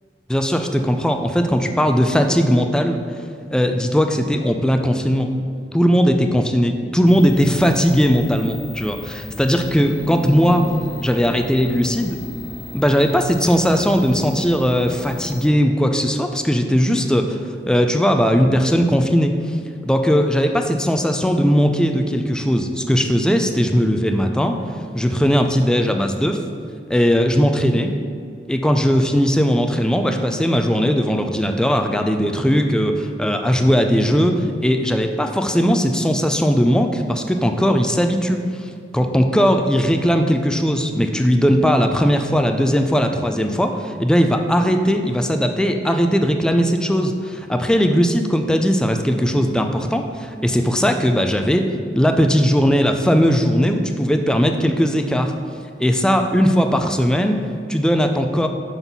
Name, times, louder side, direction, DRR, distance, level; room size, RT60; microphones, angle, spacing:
voice 1, 0.3-3.0 3.5-5.3 5.7-10.7 11.0-12.2 12.7-17.4 17.7-19.3 19.8-24.6 24.9-26.4 26.9-27.9 28.5-38.4 38.9-55.3 55.8-57.4 57.7-58.5, equal, 5° left, 5 dB, 0.4 m, -18 dB
sound 1, 7.1-15.5, left 1 dB, 50° left, 1.4 m, -34 dB
5.9 x 3.9 x 5.4 m, 2.2 s
head